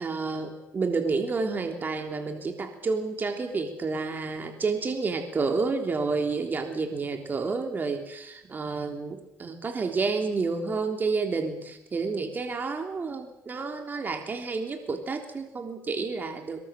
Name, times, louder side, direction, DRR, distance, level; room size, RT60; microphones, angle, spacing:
voice 1, 0.0-16.6, right 4 dB, 35° right, 4 dB, 3.4 m, -30 dB
23.0 x 21.5 x 7.5 m, 0.87 s
cardioid pair, 95°, 6 cm